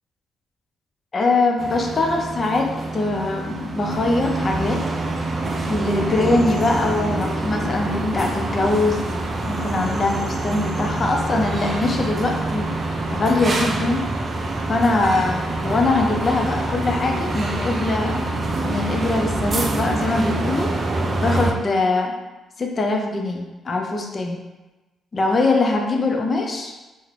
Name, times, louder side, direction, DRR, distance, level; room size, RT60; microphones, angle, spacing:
voice 1, 1.1-4.8 5.7-9.0 9.5-12.7 13.1-14.1 14.7-18.3 18.6-20.7 21.2-22.1 22.6-24.4 25.1-26.7, left 2 dB, 40° left, 2 dB, 0.4 m, -22 dB
sound 1, 1.6-21.5, right 2 dB, 35° right, 0.4 m, -26 dB
2.4 x 2.1 x 3.2 m, 1.1 s
cardioid pair, 90°, 0 cm